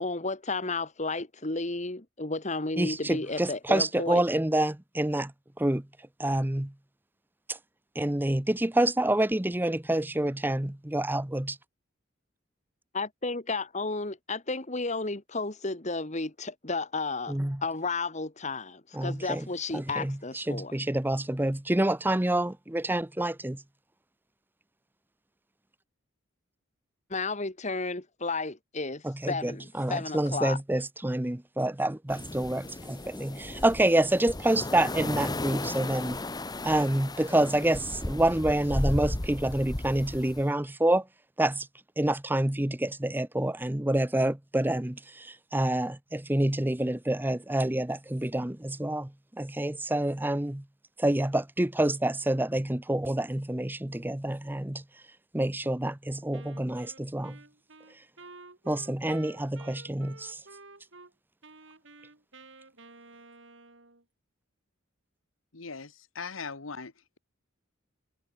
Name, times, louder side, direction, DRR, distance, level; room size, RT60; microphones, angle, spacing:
voice 1, 0.0-4.2 12.9-17.3 17.6-20.7 27.1-30.6, left 3 dB, 35° left, 2.0 m, -32 dB
voice 2, 2.8-5.3 5.6-5.9 6.2-6.7 7.5-7.6 7.9-11.6 17.3-17.6 18.9-19.5 19.7-23.6 29.0-36.2 36.6-41.1 41.4-41.7 42.0-49.1 49.4-50.6 51.0-54.8 55.3-57.4 58.7-60.4, right 1 dB, 10° right, 0.7 m, -27 dB
sound 1, 32.1-40.4, left 1 dB, 20° left, 1.0 m, -35 dB
Wind instrument woodwind instrument, 56.3-61.1 61.4-64.0, right 3 dB, 65° right, 3.6 m, -51 dB
voice 3, 65.5-67.2, left 5 dB, 90° left, 1.6 m, -40 dB
head